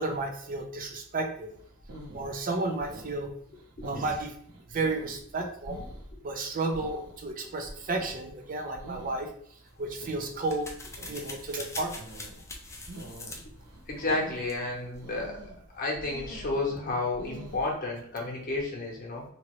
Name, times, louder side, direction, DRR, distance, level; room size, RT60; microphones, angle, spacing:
voice 1, 0.0-1.5 2.1-3.3 3.8-4.3 4.7-5.8 6.2-9.3 9.8-10.7 11.0-12.1, right 2 dB, 40° right, 4 dB, 0.5 m, -32 dB
sound 1, 1.5-17.8, right 1 dB, 85° right, 0.7 m, -46 dB
sound 2, 9.7-15.0, left 2 dB, 15° left, 0.4 m, -44 dB
voice 2, 13.9-15.4 15.7-19.2, left 2 dB, 40° left, -2 dB, 0.9 m, -31 dB
2.9 x 2.5 x 3.0 m, 0.62 s
head